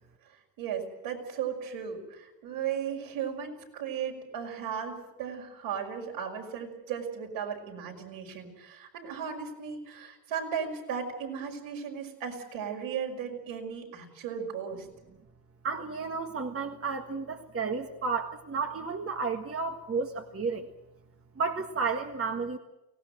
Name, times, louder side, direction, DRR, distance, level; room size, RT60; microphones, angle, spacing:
voice 1, 0.3-14.9, right 7 dB, 65° right, 1 dB, 5.8 m, -36 dB
voice 2, 15.6-20.7 21.4-22.6, right 4 dB, 25° right, 4 dB, 1.7 m, -32 dB
24.0 x 18.0 x 7.8 m, 0.95 s
hypercardioid pair, 65°, 50 cm